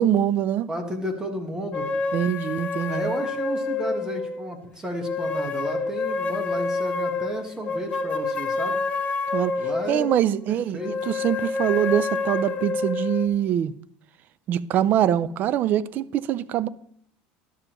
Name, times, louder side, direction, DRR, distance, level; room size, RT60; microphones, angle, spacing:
voice 1, 0.0-0.7 2.1-3.1 9.3-9.5 9.9-13.7 14.5-16.7, right 10 dB, 40° right, 0.3 m, -23 dB
voice 2, 0.7-1.9 2.9-8.8 9.6-10.1 10.5-11.1, right 1 dB, 15° right, 1.1 m, -33 dB
sound 1, 1.7-4.5 5.0-10.2 10.8-13.3, left 4 dB, 30° left, 0.7 m, -28 dB
11.5 x 6.9 x 3.0 m
supercardioid pair, 130°, 5 cm